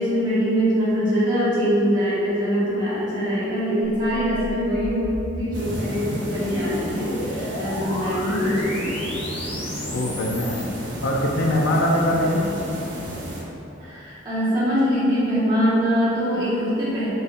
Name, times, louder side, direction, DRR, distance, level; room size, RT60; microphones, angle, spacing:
voice 1, 0.0-5.0 5.3-9.1 13.8-17.1, equal, 25° right, -11 dB, 1.3 m, -23 dB
sound 1, 3.8-10.7, left 1 dB, 35° left, 0.6 m, -33 dB
sound 2, 5.5-13.4, right 1 dB, 65° right, 0.7 m, -33 dB
voice 2, 9.9-10.6 11.0-12.5, left 1 dB, 85° left, -1 dB, 0.4 m, -22 dB
4.1 x 3.8 x 2.5 m, 2.8 s
head